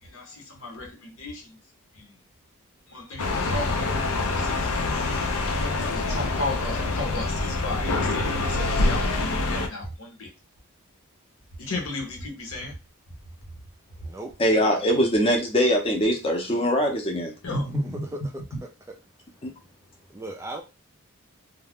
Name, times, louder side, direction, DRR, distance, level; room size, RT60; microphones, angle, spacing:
voice 1, 0.0-1.6 2.0-2.1 2.9-5.0 5.8-10.3 11.6-12.7 17.4-18.0, left 2 dB, 65° left, 0.9 m, -34 dB
sound 1, 3.2-9.7, left 2 dB, 85° left, 0.5 m, -26 dB
voice 2, 14.4-17.3 19.4-19.5, equal, 25° left, 0.6 m, -22 dB
voice 3, 20.1-20.6, right 2 dB, 15° right, 0.3 m, -37 dB
2.4 x 2.1 x 3.4 m
head